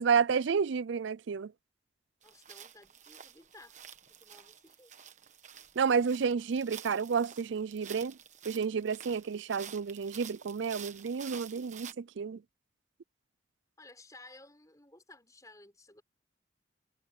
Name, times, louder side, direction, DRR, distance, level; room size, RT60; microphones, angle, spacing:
voice 1, 0.0-1.5 5.8-8.2 8.4-12.4, right 6 dB, 75° right, 0.4 m, -30 dB
voice 2, 2.2-3.8 4.2-4.9 13.8-16.0, left 2 dB, 20° left, 5.5 m, -55 dB
sound 1, 2.2-11.9, right 8 dB, 40° right, 1.3 m, -50 dB
head